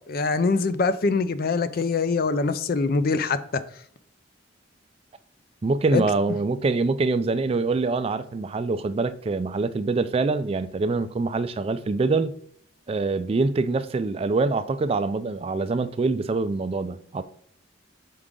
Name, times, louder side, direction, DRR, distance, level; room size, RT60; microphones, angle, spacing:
voice 1, 0.1-3.6 5.9-6.0, left 4 dB, 50° left, 0.4 m, -23 dB
voice 2, 5.6-12.3 12.9-17.2, right 3 dB, 30° right, 0.3 m, -25 dB
6.5 x 4.7 x 3.7 m
head